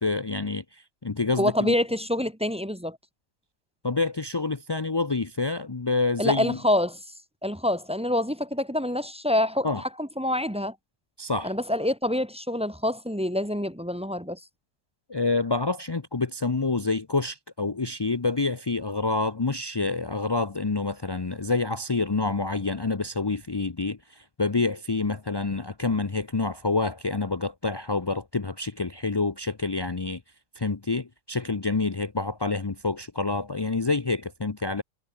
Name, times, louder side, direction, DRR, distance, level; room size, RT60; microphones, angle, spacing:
voice 1, 0.0-1.7 3.8-6.6 9.6-9.8 11.2-11.5 15.1-30.2 30.6-34.8, left 3 dB, 40° left, 0.3 m, -27 dB
voice 2, 1.4-3.0 6.2-7.0 7.4-10.7 11.4-14.4, left 1 dB, 5° right, 0.9 m, -26 dB
omnidirectional pair, 1.8 m